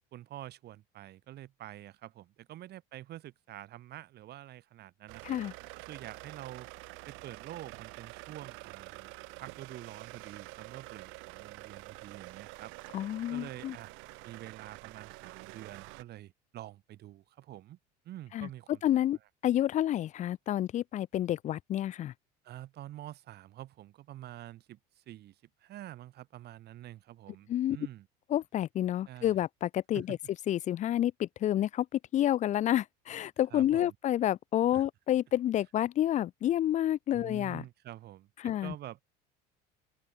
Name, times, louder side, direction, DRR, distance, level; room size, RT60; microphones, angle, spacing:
voice 1, 0.1-5.4 5.7-6.7 7.1-12.7 13.3-13.9 14.2-17.8 18.0-18.8 22.4-28.1 29.1-29.4 29.9-30.2 33.5-33.9 34.7-34.8 37.1-39.0, right 14 dB, 50° right, 1.2 m, -47 dB
sound 1, 5.1-16.0, right 26 dB, 70° right, 1.1 m, -48 dB
voice 2, 12.9-13.7 18.3-18.5 18.8-19.2 19.4-22.1 27.5-27.8 28.3-30.2 30.5-37.6 38.4-38.7, left 12 dB, 35° left, 0.4 m, -29 dB
open air
supercardioid pair, 95°, 21 cm